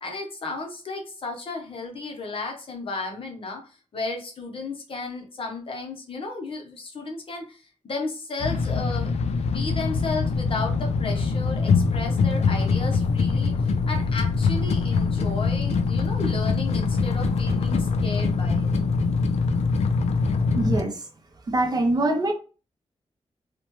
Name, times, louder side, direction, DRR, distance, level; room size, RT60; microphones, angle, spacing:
voice 1, 0.0-9.1 9.4-18.7, left 3 dB, 55° left, 1 dB, 0.8 m, -34 dB
sound 1, 8.4-20.8, left 4 dB, 75° left, 0.4 m, -23 dB
voice 2, 20.5-21.1 21.5-22.3, right 2 dB, 35° right, 3 dB, 0.5 m, -23 dB
2.9 x 2.1 x 3.0 m, 0.35 s
wide cardioid pair, 165°, 11 cm